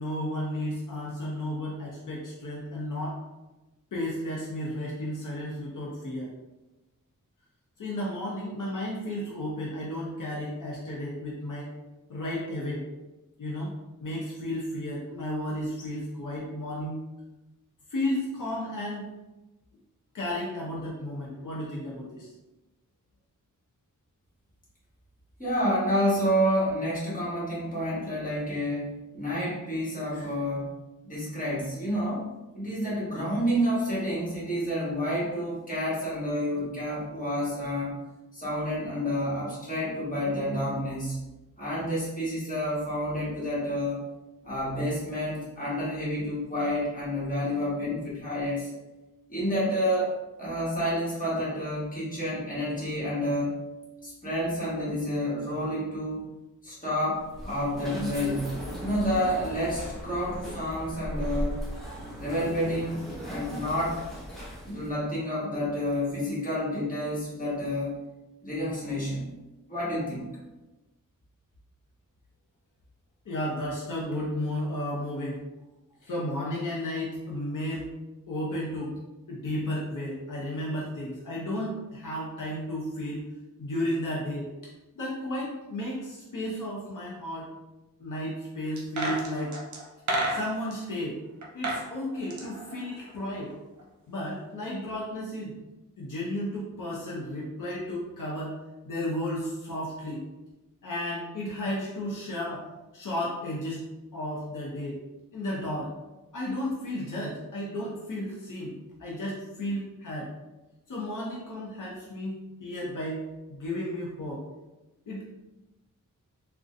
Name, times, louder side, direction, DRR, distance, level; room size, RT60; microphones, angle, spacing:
voice 1, 0.0-3.2 3.9-6.3 7.8-11.7 12.1-12.9 13.4-13.7 14.0-17.0 17.9-19.1 20.1-22.3 73.3-75.4 76.0-77.9 78.3-79.0 79.3-83.2 83.6-84.5 84.9-87.5 88.0-89.6 90.3-91.2 91.5-93.5 94.1-95.6 96.0-98.6 98.8-100.2 100.8-102.6 102.9-103.8 104.1-105.0 105.3-105.9 106.3-108.7 109.0-110.3 110.9-113.2 113.5-114.4 115.1-115.2, left 1 dB, 70° left, -4 dB, 0.7 m, -33 dB
voice 2, 25.4-30.7 31.0-32.3 32.5-38.0 38.3-41.2 41.6-44.0 44.4-48.7 49.3-53.6 54.0-56.3 56.6-61.6 62.1-64.0 64.6-68.0 68.4-69.3 69.7-70.3, equal, 25° left, -8 dB, 1.3 m, -29 dB
sound 1, 57.1-65.0, equal, ahead, 0.8 m, -37 dB
sound 2, 88.8-90.8 91.4-91.9 92.2-93.5 93.8-93.9, right 1 dB, 60° right, 0.7 m, -31 dB
3.9 x 2.2 x 2.5 m, 1.0 s
wide cardioid pair, 135°, 32 cm